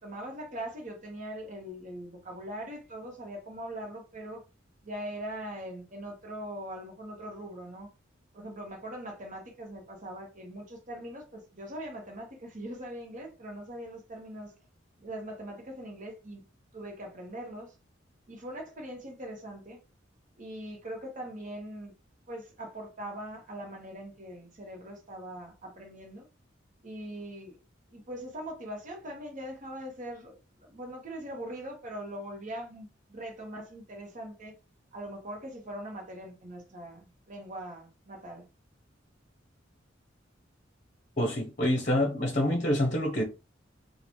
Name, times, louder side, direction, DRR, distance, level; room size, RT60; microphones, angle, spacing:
voice 1, 0.0-4.4 4.8-7.9 8.3-14.5 15.0-16.4 16.7-17.7 18.3-19.8 20.4-21.9 22.3-26.3 26.8-27.6 27.9-34.5 34.9-38.4, right 1 dB, 40° right, 1.1 m, -41 dB
voice 2, 41.2-43.2, left 1 dB, 40° left, 0.8 m, -26 dB
3.8 x 2.4 x 3.1 m
head